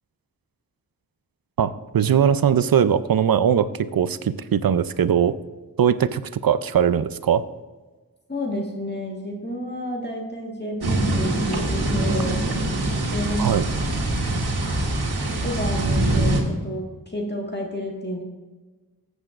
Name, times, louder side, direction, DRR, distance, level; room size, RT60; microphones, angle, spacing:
voice 1, 1.6-5.3 5.8-7.4 13.4-13.6, right 8 dB, 65° right, 14 dB, 0.5 m, -20 dB
voice 2, 8.3-12.4 13.1-13.6 15.4-18.2, equal, 25° left, -1 dB, 1.6 m, -30 dB
sound 1, 10.8-16.4, right 2 dB, 80° right, 1.7 m, -23 dB
14.0 x 8.0 x 2.5 m, 1.3 s
wide cardioid pair, 65°, 38 cm